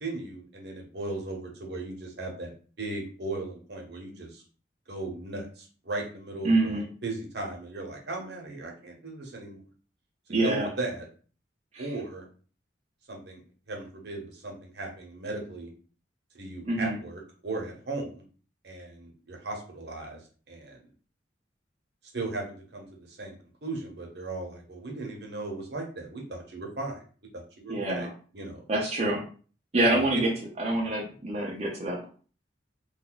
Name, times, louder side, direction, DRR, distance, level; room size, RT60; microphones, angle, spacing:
voice 1, 0.0-2.5 2.8-4.4 4.9-9.6 10.3-11.1 11.8-12.2 13.1-13.4 13.7-15.7 16.4-18.2 18.6-20.2 20.5-20.8 22.1-23.4 23.6-27.0 27.3-28.1 28.3-28.6 29.9-30.1, right 2 dB, 65° right, 1 dB, 0.9 m, -37 dB
voice 2, 6.4-6.9 10.3-10.7 11.7-11.9 16.6-17.0 27.7-28.1 28.7-29.2 29.7-30.3 30.6-32.1, right 2 dB, 35° right, -4 dB, 0.6 m, -26 dB
2.6 x 2.3 x 4.0 m, 0.40 s
head